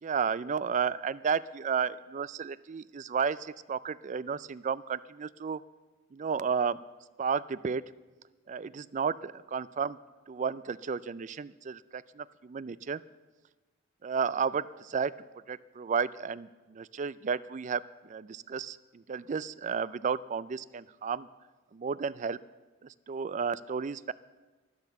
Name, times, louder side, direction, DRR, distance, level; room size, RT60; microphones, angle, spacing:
voice 1, 0.0-5.6 6.1-6.8 7.2-7.8 8.5-10.0 10.3-13.0 14.0-15.1 15.5-21.3 21.7-22.4 23.1-24.1, right 6 dB, 35° right, 18 dB, 0.3 m, -32 dB
12.0 x 11.0 x 7.0 m, 1.2 s
head